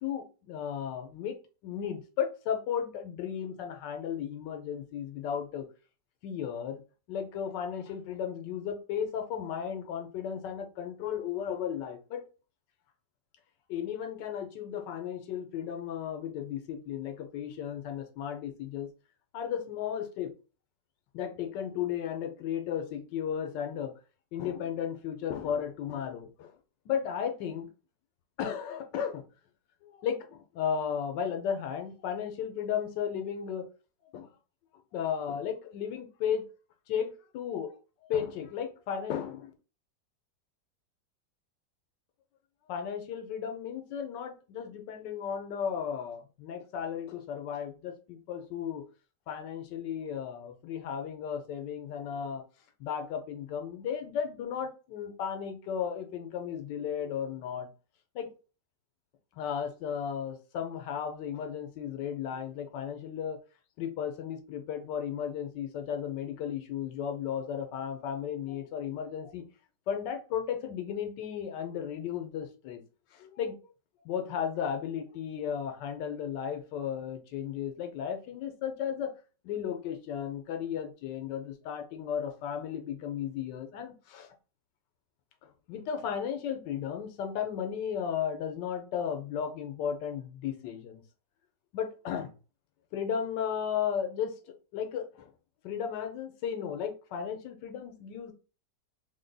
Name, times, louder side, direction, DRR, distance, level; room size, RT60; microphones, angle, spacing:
voice 1, 0.0-1.4 1.6-5.7 6.2-6.8 7.1-12.2 13.7-18.9 19.3-20.3 21.1-23.9 24.3-26.5 26.9-27.7 28.4-29.2 29.8-33.7 34.1-34.3 34.9-36.4 36.9-37.8 38.1-39.5 42.7-48.8 49.3-52.4 52.8-57.7 58.1-58.3 59.3-63.4 63.8-69.4 69.9-72.8 73.1-73.6 74.0-79.1 79.4-84.3 85.4-91.0 91.7-92.3 92.9-95.3 95.6-98.3, left 8 dB, 85° left, 6 dB, 1.3 m, -34 dB
3.6 x 2.2 x 3.9 m, 0.35 s
omnidirectional pair, 1.9 m